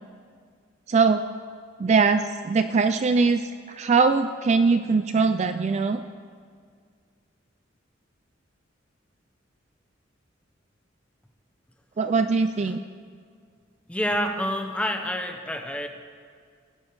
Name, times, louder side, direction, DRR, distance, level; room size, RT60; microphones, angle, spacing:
voice 1, 0.9-1.2 1.8-6.0 12.0-12.8, right 4 dB, 35° right, 9 dB, 0.3 m, -21 dB
voice 2, 13.9-15.9, equal, 5° left, 4 dB, 0.9 m, -28 dB
19.0 x 8.4 x 4.7 m, 2.1 s
head